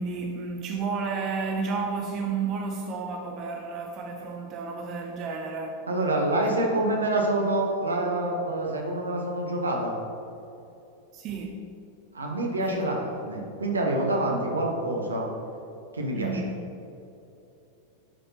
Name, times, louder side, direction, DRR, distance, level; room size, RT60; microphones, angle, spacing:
voice 1, 0.0-5.9 6.4-6.8 11.1-11.8 12.6-12.9 16.2-16.6, right 4 dB, 35° right, 2 dB, 0.6 m, -32 dB
voice 2, 5.9-9.9 12.1-15.3 15.9-16.4, right 1 dB, 75° right, 0 dB, 1.0 m, -27 dB
9.8 x 5.1 x 2.9 m, 2.8 s
figure-of-eight pair, 90°, 0 cm